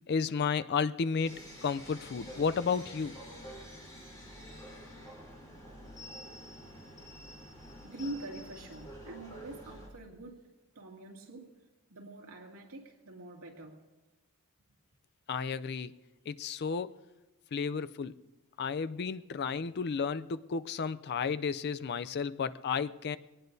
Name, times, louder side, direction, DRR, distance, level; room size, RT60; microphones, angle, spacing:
voice 1, 0.1-3.2 15.3-15.9 16.3-16.9 17.5-18.2 18.6-23.2, left 5 dB, 50° left, 14 dB, 0.4 m, -32 dB
sound 1, 1.2-9.9, equal, 15° left, 4.1 m, -48 dB
voice 2, 7.8-10.5 10.7-11.5 11.9-13.8, right 1 dB, 85° right, -1 dB, 2.5 m, -45 dB
22.5 x 18.5 x 2.7 m, 1.1 s
head